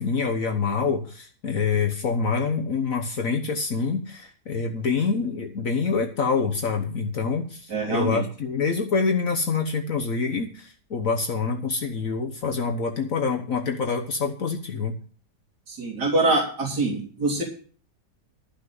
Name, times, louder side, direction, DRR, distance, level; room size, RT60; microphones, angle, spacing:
voice 1, 0.0-15.0, left 5 dB, 55° left, 3 dB, 1.5 m, -26 dB
voice 2, 7.7-8.2 15.7-17.4, right 2 dB, 70° right, -1 dB, 3.9 m, -24 dB
13.5 x 6.2 x 7.7 m, 0.42 s
omnidirectional pair, 1.8 m